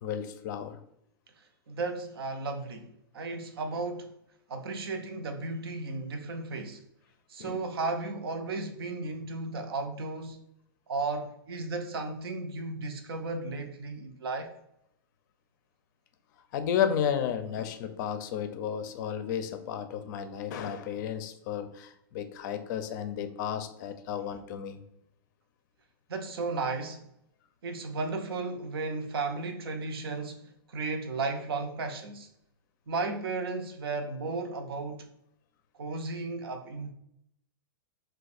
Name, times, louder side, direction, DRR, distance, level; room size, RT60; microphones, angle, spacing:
voice 1, 0.0-0.8 7.4-7.6 16.5-24.8, left 8 dB, 50° left, 0.4 m, -33 dB
voice 2, 1.7-4.1 4.5-6.8 7.3-10.4 10.9-14.5 26.1-27.1 27.6-32.3 32.9-35.1 35.8-36.9, right 3 dB, 80° right, 0.6 m, -34 dB
2.5 x 2.2 x 4.0 m
hypercardioid pair, 130°, 12 cm